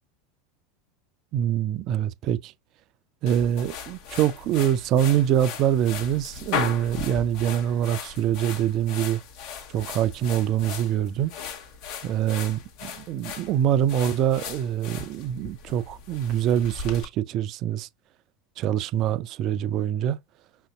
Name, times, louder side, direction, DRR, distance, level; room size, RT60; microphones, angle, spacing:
voice 1, 1.3-2.5 3.2-9.2 9.7-11.3 12.0-17.9 18.6-20.2, right 10 dB, 45° right, 0.3 m, -24 dB
sound 1, 3.3-17.0, left 6 dB, 55° left, 0.8 m, -37 dB
5.5 x 2.6 x 2.2 m
figure-of-eight pair, 80°, 0 cm